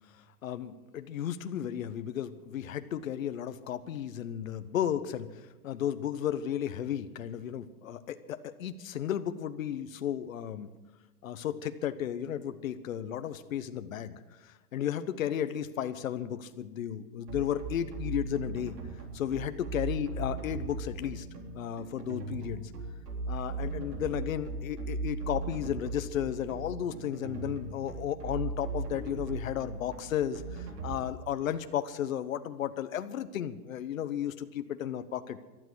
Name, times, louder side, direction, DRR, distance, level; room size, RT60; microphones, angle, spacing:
voice 1, 0.4-10.7 11.2-18.8 19.1-21.3 21.5-22.7 23.3-35.4, left 10 dB, 55° left, 10 dB, 1.1 m, -34 dB
sound 1, 17.3-31.0, right 3 dB, 75° right, 3.5 m, -37 dB
18.0 x 12.5 x 6.3 m, 1.2 s
hypercardioid pair, 180°, 47 cm